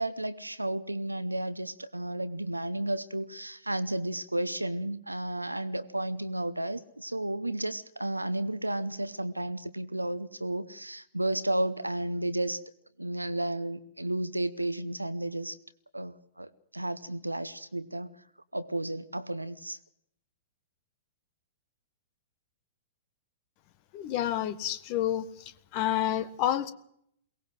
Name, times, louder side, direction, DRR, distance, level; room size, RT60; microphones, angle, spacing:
voice 1, 0.0-12.6 13.0-15.6 15.9-18.1 18.5-19.8, right 1 dB, 85° right, 14 dB, 0.8 m, -32 dB
voice 2, 23.9-26.7, left 11 dB, 40° left, 15 dB, 1.4 m, -29 dB
22.5 x 18.0 x 7.7 m, 0.72 s
figure-of-eight pair, 105°, 0 cm